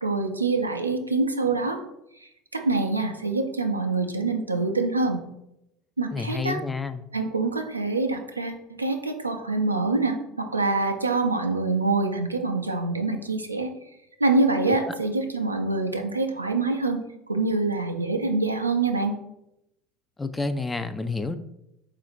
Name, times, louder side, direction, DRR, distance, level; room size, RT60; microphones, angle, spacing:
voice 1, 0.0-1.8 2.5-5.2 6.0-6.6 7.1-13.7 14.2-17.0 17.3-19.1, right 3 dB, 90° right, 4 dB, 0.4 m, -25 dB
voice 2, 6.1-7.0 14.7-14.9 20.2-21.4, left 3 dB, 15° left, 10 dB, 0.3 m, -29 dB
4.1 x 2.5 x 4.3 m, 0.83 s
figure-of-eight pair, 70°, 0 cm